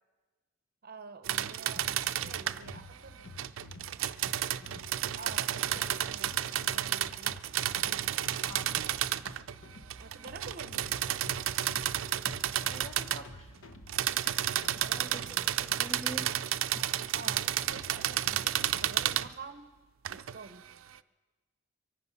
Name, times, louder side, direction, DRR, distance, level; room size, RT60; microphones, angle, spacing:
voice 1, 0.8-3.3 5.2-7.4 7.7-8.2 10.0-11.0 14.8-15.3 17.1-19.7 20.1-20.7, right 4 dB, 50° right, 10 dB, 0.7 m, -48 dB
sound 1, 1.2-2.8 3.4-9.6 9.9-13.2 13.9-19.3 20.0-20.4, right 12 dB, 80° right, 0.4 m, -32 dB
sound 2, 1.7-19.3, left 1 dB, 75° left, 1.0 m, -50 dB
voice 2, 8.4-8.7 12.7-13.6 14.9-16.3, right 1 dB, 30° left, 6 dB, 1.2 m, -45 dB
23.5 x 9.6 x 5.7 m, 1.3 s
head